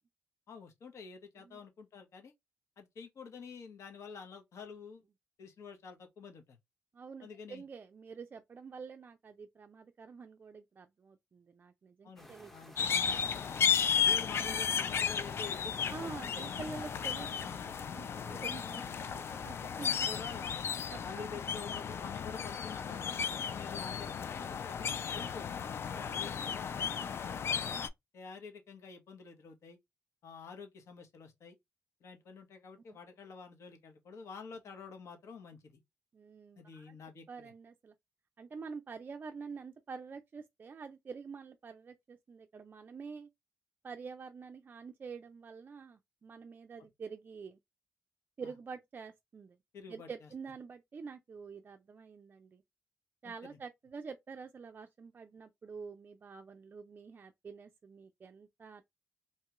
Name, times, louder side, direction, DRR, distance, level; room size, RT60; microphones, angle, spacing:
voice 1, 0.5-2.3 2.8-5.0 5.4-6.6 7.2-7.6 12.0-13.0 14.0-16.5 19.7-20.6 21.0-25.5 26.2-27.5 28.1-29.8 30.2-31.6 32.0-35.8 36.6-37.5 46.8-46.9 48.4-48.5 49.7-50.3 53.2-53.3, left 5 dB, 70° left, 0.9 m, -49 dB
voice 2, 6.9-12.5 13.0-13.4 15.9-20.1 20.9-21.2 23.1-23.3 25.9-26.1 36.1-37.0 37.3-37.9 38.4-43.3 43.8-47.6 48.4-49.6 49.9-52.6 53.2-58.8, right 5 dB, 40° right, 0.3 m, -47 dB
sound 1, 12.2-17.5, equal, 5° left, 0.6 m, -54 dB
sound 2, 12.8-27.9, left 7 dB, 55° left, 0.3 m, -34 dB
2.8 x 2.3 x 2.9 m
cardioid pair, 95°, 5 cm